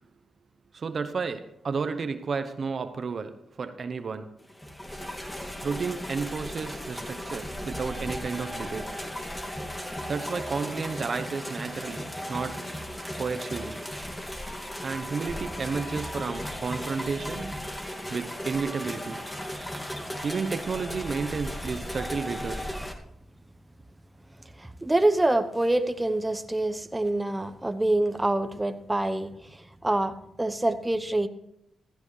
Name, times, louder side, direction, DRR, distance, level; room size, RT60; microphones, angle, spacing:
voice 1, 0.7-4.3 5.6-9.0 9.5-12.7 13.2-13.8 14.8-17.6 18.1-19.2 20.2-22.7, right 5 dB, 55° right, 9 dB, 0.8 m, -32 dB
sound 1, 4.5-22.9, equal, 15° left, 2.2 m, -36 dB
voice 2, 24.6-29.3 29.8-30.1 30.4-31.3, right 1 dB, 15° right, 10 dB, 0.9 m, -25 dB
15.5 x 14.0 x 3.3 m, 0.78 s
supercardioid pair, 50°, 0 cm